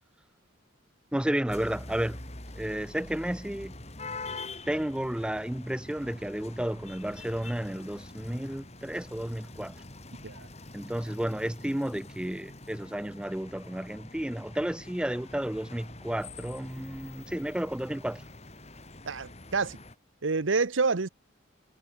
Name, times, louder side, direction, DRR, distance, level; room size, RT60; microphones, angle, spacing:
voice 1, 1.1-2.2 2.6-3.7 4.7-9.8 10.7-18.2, right 1 dB, 5° right, 0.3 m, -32 dB
sound 1, 1.5-19.9, left 2 dB, 35° left, 6.4 m, -45 dB
voice 2, 19.1-19.8 20.2-21.1, right 4 dB, 90° right, 1.0 m, -28 dB
head